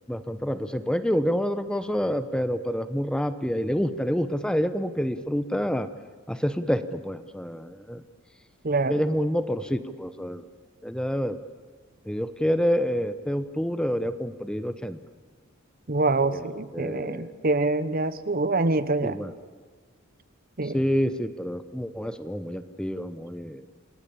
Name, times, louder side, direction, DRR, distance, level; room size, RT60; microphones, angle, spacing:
voice 1, 0.1-5.9 6.3-8.0 8.9-10.5 10.8-11.4 12.1-15.0 16.3-16.5 16.7-17.3 19.0-19.3 20.6-23.7, equal, 5° left, 11 dB, 0.9 m, -28 dB
voice 2, 15.9-19.2 20.6-20.8, right 3 dB, 45° right, 13 dB, 1.1 m, -25 dB
28.0 x 19.0 x 8.6 m, 1.4 s
head